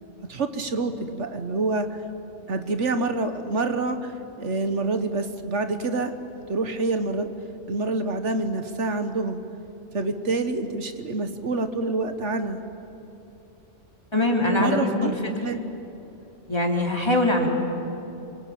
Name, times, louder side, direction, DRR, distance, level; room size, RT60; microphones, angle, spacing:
voice 1, 0.3-2.0 2.5-6.1 6.5-7.3 7.7-9.4 9.9-12.6 14.6-15.2 15.4-15.7, right 3 dB, 75° right, 8 dB, 1.6 m, -27 dB
voice 2, 14.1-15.1 16.5-17.5, left 1 dB, 20° left, 0 dB, 3.4 m, -22 dB
28.0 x 23.5 x 8.6 m, 2.9 s
omnidirectional pair, 1.2 m